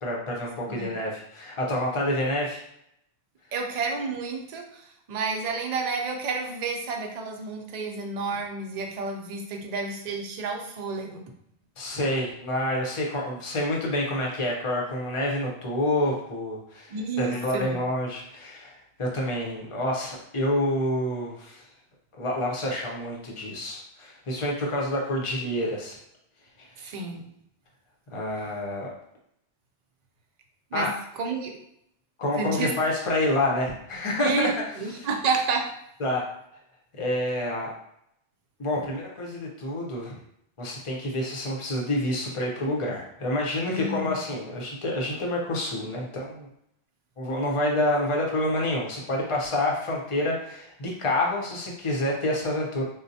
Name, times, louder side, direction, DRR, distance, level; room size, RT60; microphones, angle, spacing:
voice 1, 0.0-2.6 11.8-21.7 22.2-25.9 26.6-26.8 28.1-29.0 30.7-30.9 32.2-34.5 34.9-35.1 36.0-36.2 37.0-37.7 38.6-40.1 40.6-46.5 47.2-52.8, left 1 dB, 35° left, -2 dB, 0.6 m, -28 dB
voice 2, 3.5-11.2 16.9-17.8 26.8-27.3 30.7-30.9 31.2-31.6 32.4-32.7 34.2-35.7 43.7-44.3, right 4 dB, 55° right, 2 dB, 0.5 m, -30 dB
3.8 x 2.1 x 2.7 m, 0.75 s
omnidirectional pair, 1.1 m